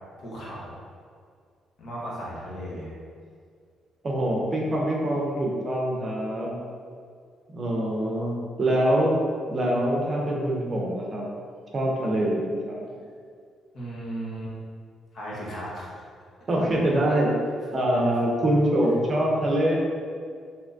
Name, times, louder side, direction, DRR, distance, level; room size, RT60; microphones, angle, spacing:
voice 1, 0.2-0.8 1.8-2.9 13.7-14.5 15.1-15.8, right 1 dB, 65° left, -6 dB, 1.0 m, -35 dB
voice 2, 4.0-6.6 7.5-9.2 9.5-11.3 11.7-12.9 16.5-17.3 17.7-19.8, right 1 dB, 40° right, -2 dB, 0.6 m, -24 dB
3.5 x 2.8 x 2.6 m, 2.1 s
cardioid pair, 90°, 0 cm